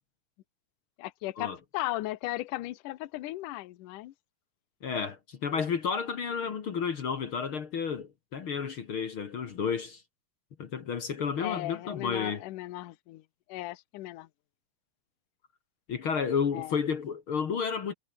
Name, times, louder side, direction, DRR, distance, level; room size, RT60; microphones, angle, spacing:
voice 1, 1.0-4.1 11.4-13.2 13.5-14.3 16.5-16.7, left 17 dB, 70° left, 2.2 m, -36 dB
voice 2, 4.8-10.0 10.6-12.4 15.9-17.9, left 6 dB, 50° left, 1.6 m, -31 dB
omnidirectional pair, 4.6 m